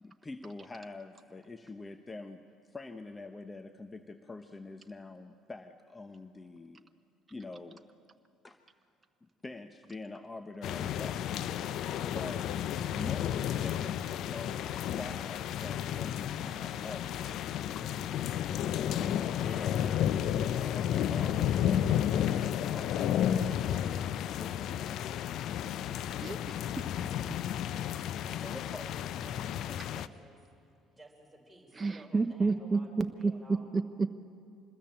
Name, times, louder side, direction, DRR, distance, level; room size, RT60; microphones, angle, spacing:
voice 1, 0.0-6.9 7.3-7.8 8.4-8.6 9.2-11.6 12.0-12.6 12.9-17.8 18.7-23.2 24.4-24.5 28.5-28.8, left 3 dB, 20° left, 9 dB, 1.0 m, -45 dB
sound 1, 10.6-30.1, left 10 dB, 60° left, 0.7 m, -32 dB
voice 2, 26.2-26.9 31.7-34.1, right 4 dB, 25° right, 8 dB, 0.9 m, -31 dB
voice 3, 28.3-30.4 31.0-33.7, right 2 dB, ahead, -2 dB, 4.9 m, -54 dB
25.5 x 20.5 x 8.8 m, 2.5 s
hypercardioid pair, 55°, 0 cm